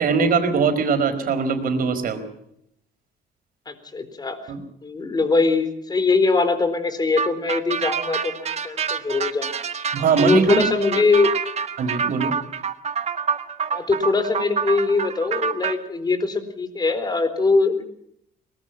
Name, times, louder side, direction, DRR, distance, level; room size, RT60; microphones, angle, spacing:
voice 1, 0.0-2.2 4.5-4.6 9.9-10.7 11.8-12.3, right 5 dB, 60° right, 7 dB, 4.8 m, -21 dB
voice 2, 3.7-4.4 4.8-9.7 10.2-11.3 13.7-17.8, left 3 dB, 25° left, 10 dB, 4.3 m, -22 dB
sound 1, 7.2-15.7, right 6 dB, 40° right, 1.5 m, -27 dB
22.5 x 20.0 x 6.0 m, 0.72 s
cardioid pair, 110°, 17 cm